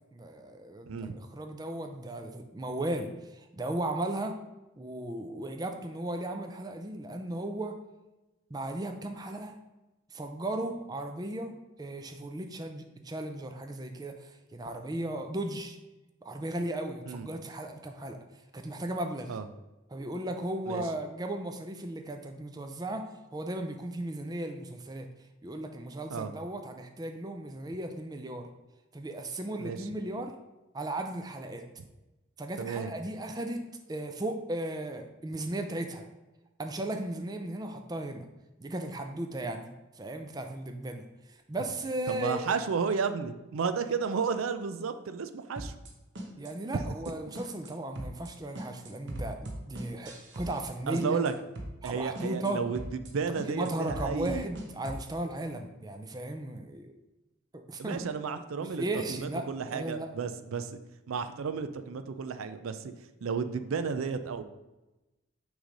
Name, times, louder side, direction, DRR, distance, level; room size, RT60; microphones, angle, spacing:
voice 1, 0.1-4.4 4.8-7.8 8.5-9.6 10.1-15.8 16.2-18.2 18.5-19.4 19.9-23.1 23.3-25.1 25.4-28.5 28.9-30.3 30.7-31.6 32.4-33.6 33.9-36.1 36.6-38.3 38.6-39.7 39.9-42.5 46.4-51.2 51.8-52.6 53.4-56.9 57.5-58.0 58.6-60.1, right 1 dB, 20° right, 5 dB, 0.4 m, -36 dB
voice 2, 0.9-1.2 17.1-17.3 19.3-19.4 20.7-20.8 26.1-26.3 29.6-29.9 32.6-32.9 42.1-45.7 50.9-51.3 51.8-52.8 53.1-54.5 57.8-60.7 61.1-62.9 63.2-64.4, right 5 dB, 90° right, 10 dB, 0.5 m, -32 dB
sound 1, 45.6-45.9 46.2-46.5 46.8-47.1 47.4-47.7 48.0-48.3 48.6-50.7 51.0-51.3 51.6-51.9 52.2-52.5 52.8-53.1 53.4-55.1, right 1 dB, 60° right, 1.0 m, -39 dB
6.3 x 3.2 x 5.1 m, 1.0 s
head